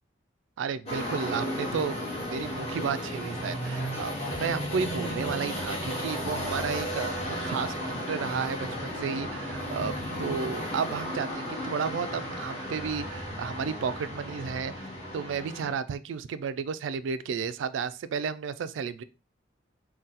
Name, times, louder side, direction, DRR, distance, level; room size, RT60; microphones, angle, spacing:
voice 1, 0.6-7.8 8.1-19.0, right 6 dB, 85° right, 0.3 m, -33 dB
sound 1, 0.9-15.7, equal, 35° left, 1.6 m, -34 dB
3.8 x 2.2 x 4.0 m
head